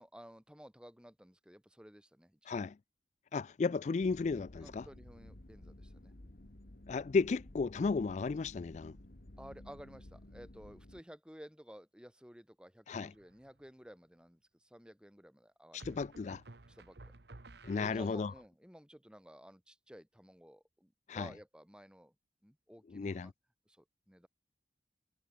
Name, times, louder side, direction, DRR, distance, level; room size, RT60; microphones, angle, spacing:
voice 1, 0.0-2.6 4.6-6.1 9.4-16.0 16.7-17.0 17.7-22.1 22.4-23.3 23.7-24.3, equal, 5° right, 3.9 m, -54 dB
voice 2, 3.3-4.9 6.9-9.0 12.9-13.1 15.7-16.4 17.6-18.3 21.1-21.3 22.9-23.3, left 4 dB, 40° left, 0.3 m, -34 dB
sound 1, 4.0-11.0, left 1 dB, 55° left, 1.6 m, -54 dB
sound 2, 13.1-13.7 15.8-18.5, right 2 dB, 70° right, 1.3 m, -54 dB
head